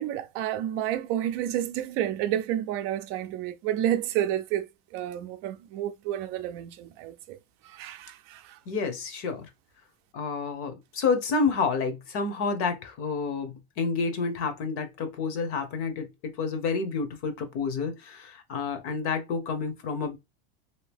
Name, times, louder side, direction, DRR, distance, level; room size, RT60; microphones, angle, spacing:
voice 1, 0.0-4.7 4.9-7.4 7.6-8.6, right 11 dB, 45° right, 0.5 m, -30 dB
voice 2, 8.7-9.5 10.1-20.2, left 4 dB, 45° left, 0.9 m, -29 dB
2.8 x 2.7 x 3.4 m
supercardioid pair, 140°, 30 cm